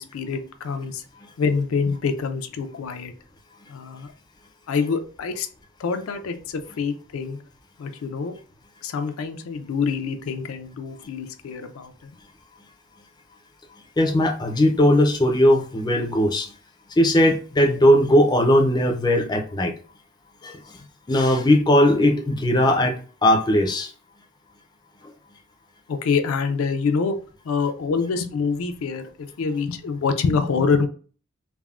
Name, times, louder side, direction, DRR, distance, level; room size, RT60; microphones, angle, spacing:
voice 1, 0.0-1.0 1.4-3.1 3.7-4.1 4.7-5.5 5.8-7.4 7.8-8.4 8.8-12.1 25.9-27.2 27.4-30.9, left 5 dB, 85° left, 0.4 m, -26 dB
voice 2, 14.0-16.5 17.0-19.7 20.4-20.6 21.1-23.9, left 1 dB, 20° left, 0.4 m, -18 dB
3.3 x 2.0 x 2.3 m
head